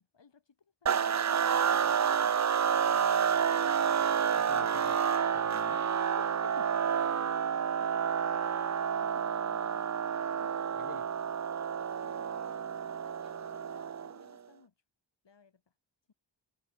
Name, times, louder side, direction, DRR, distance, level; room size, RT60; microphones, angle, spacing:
voice 1, 0.0-2.5 6.9-9.9 10.2-10.6 11.9-12.4 12.7-14.8 15.2-15.8, left 5 dB, 70° left, 6.9 m, -62 dB
sound 1, 0.9-14.2, right 7 dB, 40° right, 0.5 m, -29 dB
voice 2, 4.5-5.0 5.3-6.1 6.4-6.7 10.4-11.1, left 6 dB, 45° left, 1.0 m, -48 dB
wide cardioid pair, 120°, 44 cm